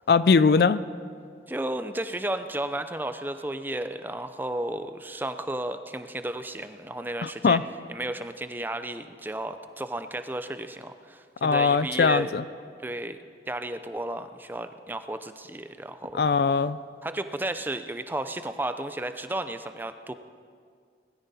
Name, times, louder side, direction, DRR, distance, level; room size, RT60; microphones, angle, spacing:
voice 1, 0.1-0.8 7.2-7.6 11.4-12.4 16.1-16.8, left 5 dB, 60° left, 15 dB, 0.4 m, -21 dB
voice 2, 1.5-7.6 7.9-12.3 12.8-13.2 13.5-16.2 17.0-20.1, right 1 dB, 10° right, 9 dB, 0.5 m, -33 dB
20.0 x 14.0 x 4.2 m, 2.1 s
head